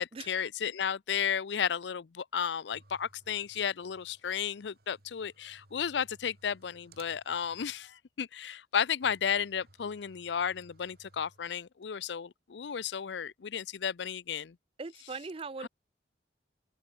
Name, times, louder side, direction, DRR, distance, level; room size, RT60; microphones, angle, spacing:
voice 1, 0.0-14.6 15.6-15.7, left 8 dB, 75° left, 0.5 m, -33 dB
sound 1, 2.7-7.9 8.2-8.3 8.5-8.6 9.0-11.8, right 2 dB, 55° right, 2.7 m, -62 dB
voice 2, 14.8-15.7, right 4 dB, 30° right, 0.4 m, -40 dB
open air
head